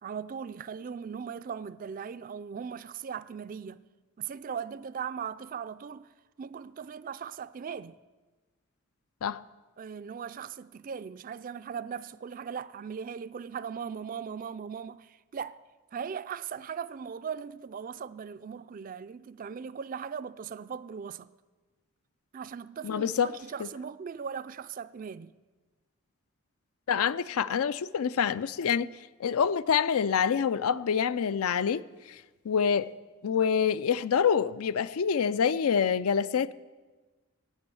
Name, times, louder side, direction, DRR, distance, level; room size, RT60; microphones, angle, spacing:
voice 1, 0.0-3.8 4.2-6.1 6.4-8.0 9.8-15.6 15.9-21.3 22.3-25.3, right 7 dB, 40° right, 0.3 m, -39 dB
voice 2, 22.8-23.3 23.6-23.7 26.9-28.9 29.2-31.8 32.1-32.2 32.4-32.9 33.2-36.5, left 7 dB, 80° left, 0.4 m, -26 dB
16.0 x 6.2 x 9.8 m
head